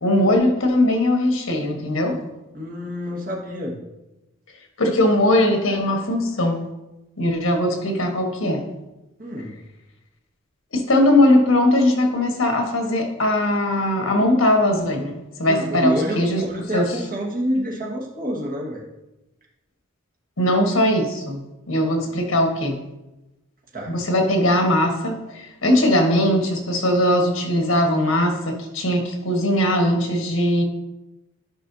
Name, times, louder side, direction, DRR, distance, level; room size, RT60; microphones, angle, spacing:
voice 1, 0.0-2.2 4.8-6.6 7.2-8.6 10.7-16.5 16.7-17.0 20.4-22.8 23.9-30.6, left 1 dB, 80° left, 3 dB, 1.4 m, -20 dB
voice 2, 2.5-3.8 9.2-9.6 15.4-18.8 22.0-22.1 23.7-23.9, equal, 45° right, -3 dB, 1.6 m, -27 dB
11.0 x 5.4 x 2.7 m, 0.99 s
head